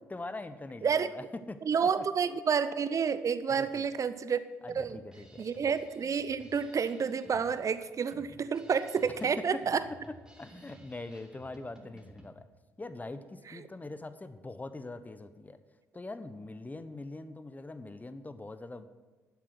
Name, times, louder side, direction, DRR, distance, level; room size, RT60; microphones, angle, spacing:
voice 1, 0.1-1.6 2.0-2.1 3.5-3.8 4.6-5.4 9.1-9.6 10.4-12.5 12.8-15.6 15.9-18.9, left 2 dB, 20° left, 12 dB, 0.9 m, -42 dB
voice 2, 1.7-4.4 4.7-5.0 5.4-9.8, right 6 dB, 40° right, 13 dB, 0.7 m, -29 dB
Drum kit, 4.7-12.3, right 1 dB, 10° right, 2.4 m, -55 dB
12.0 x 7.5 x 6.0 m, 1.3 s
hypercardioid pair, 45°, 8 cm